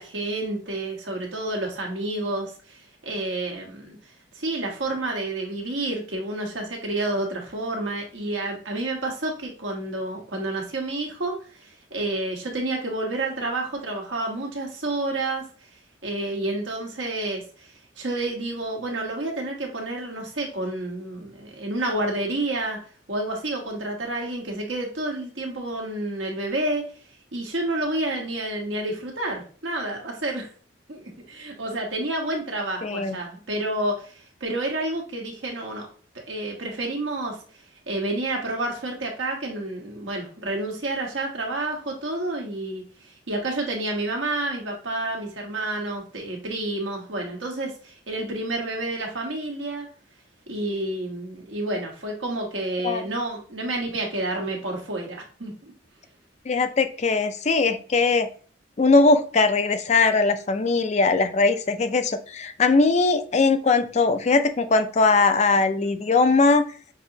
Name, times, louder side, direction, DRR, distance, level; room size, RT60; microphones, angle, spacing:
voice 1, 0.0-4.0 4.4-15.4 16.0-17.7 18.0-22.8 23.1-26.8 27.3-30.5 30.9-35.9 36.3-37.4 37.9-42.8 43.3-49.9 50.5-55.7, right 2 dB, 80° right, 0 dB, 1.3 m, -29 dB
voice 2, 32.8-33.2 52.8-53.0 56.5-58.3 58.8-66.6, left 3 dB, 35° left, 9 dB, 0.4 m, -20 dB
6.0 x 2.9 x 2.7 m, 0.42 s
head